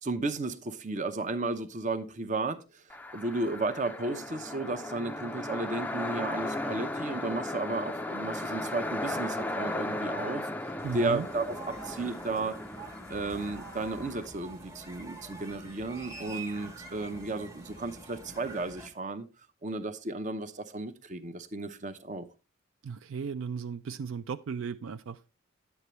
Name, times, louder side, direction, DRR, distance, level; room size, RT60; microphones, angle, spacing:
voice 1, 0.0-2.8 3.1-10.5 10.9-12.6 13.1-19.3 19.6-22.3, right 2 dB, 35° right, 0.7 m, -34 dB
sound 1, 2.9-14.3, left 1 dB, 10° left, 0.3 m, -36 dB
sound 2, 10.8-18.9, right 2 dB, 15° right, 1.0 m, -46 dB
voice 2, 10.8-11.3 22.8-25.3, right 6 dB, 70° right, 0.4 m, -36 dB
9.9 x 8.1 x 3.0 m
head